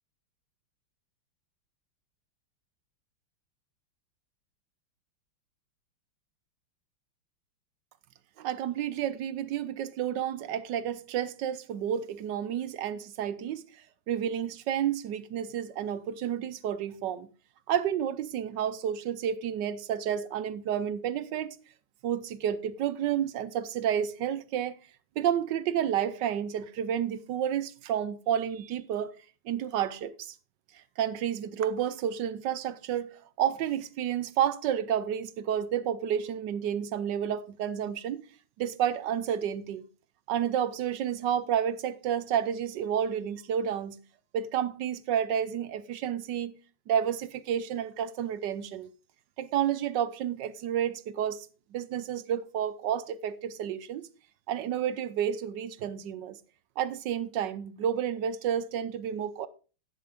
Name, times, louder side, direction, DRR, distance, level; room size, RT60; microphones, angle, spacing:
voice 1, 8.4-17.3 17.7-21.6 22.0-24.8 25.2-29.1 29.4-30.3 31.0-38.2 38.6-39.8 40.3-44.0 44.3-46.6 46.9-48.9 49.4-51.5 51.7-54.1 54.5-56.4 56.8-59.5, right 9 dB, 70° right, 1.1 m, -30 dB
11.0 x 9.4 x 3.5 m
omnidirectional pair, 2.4 m